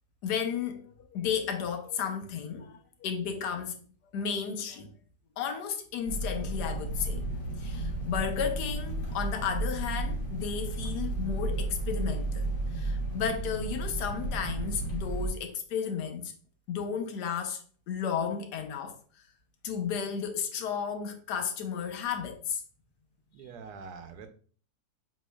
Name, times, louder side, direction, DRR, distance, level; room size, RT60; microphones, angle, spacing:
voice 1, 0.2-3.8 4.1-4.9 5.4-7.2 7.6-12.5 12.7-16.3 16.7-17.6 17.9-18.9 19.6-22.6, left 7 dB, 80° left, 1.3 m, -33 dB
sound 1, 6.1-15.3, right 2 dB, 60° left, 2.2 m, -33 dB
voice 2, 23.3-24.3, right 5 dB, 75° right, 1.0 m, -44 dB
7.4 x 3.0 x 2.3 m
omnidirectional pair, 1.8 m